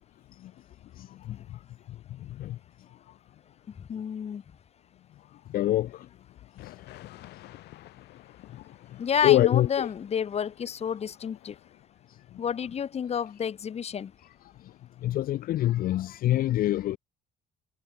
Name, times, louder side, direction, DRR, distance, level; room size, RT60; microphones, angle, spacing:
voice 1, 3.9-4.4 9.0-11.5 12.4-14.1, left 7 dB, 40° left, 1.3 m, -30 dB
voice 2, 5.5-6.1 9.2-9.9 15.0-17.0, left 14 dB, 60° left, 0.6 m, -24 dB
sound 1, 6.6-11.9, left 17 dB, 80° left, 3.2 m, -51 dB
cardioid pair, 110°, 17 cm